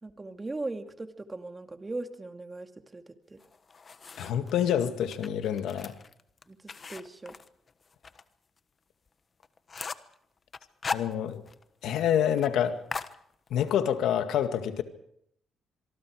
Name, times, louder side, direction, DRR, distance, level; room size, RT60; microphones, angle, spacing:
voice 1, 0.0-3.4 6.5-7.4, right 2 dB, 20° right, 7 dB, 2.2 m, -39 dB
sound 1, 3.4-4.5 5.0-8.2 8.6-8.7 9.1-9.2 9.4-10.1 10.5-11.6 11.9-12.0 12.3-12.5 12.9-13.8, left 5 dB, 35° left, 1.2 m, -38 dB
voice 2, 4.2-5.9 10.9-11.4 11.8-12.8 13.5-14.8, left 9 dB, 80° left, 8 dB, 2.0 m, -27 dB
25.5 x 23.5 x 4.9 m, 0.71 s
cardioid pair, 90°, 0 cm